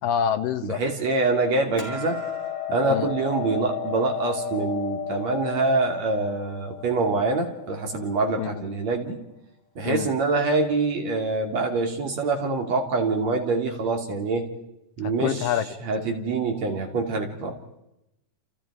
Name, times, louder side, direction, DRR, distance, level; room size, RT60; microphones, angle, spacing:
voice 1, 0.0-0.8 2.8-3.1 8.4-8.6 9.8-10.1 15.0-15.7, left 9 dB, 75° left, 9 dB, 2.9 m, -26 dB
voice 2, 0.6-2.2 2.7-9.3 9.8-14.5 15.0-15.5 15.8-17.6, right 3 dB, 50° right, 3 dB, 3.8 m, -25 dB
Hammer, 1.8-8.0, left 6 dB, 30° left, 5.4 m, -33 dB
29.0 x 29.0 x 5.0 m, 0.90 s
omnidirectional pair, 4.0 m